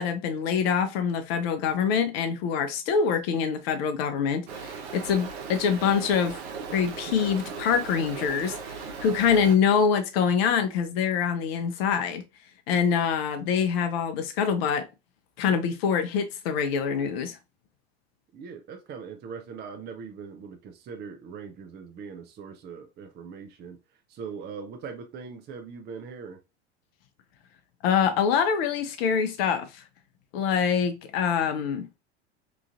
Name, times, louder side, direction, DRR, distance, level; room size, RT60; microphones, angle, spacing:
voice 1, 0.0-6.4 6.7-8.6 9.0-12.2 12.7-14.9 15.4-17.4 27.8-29.8 30.3-31.9, left 6 dB, 65° left, 0.7 m, -25 dB
Stream, 4.5-9.6, right 5 dB, 70° right, 0.8 m, -38 dB
voice 2, 18.3-23.8 24.1-26.4, right 6 dB, 30° right, 0.5 m, -41 dB
3.0 x 2.5 x 2.4 m
hypercardioid pair, 80°, 33 cm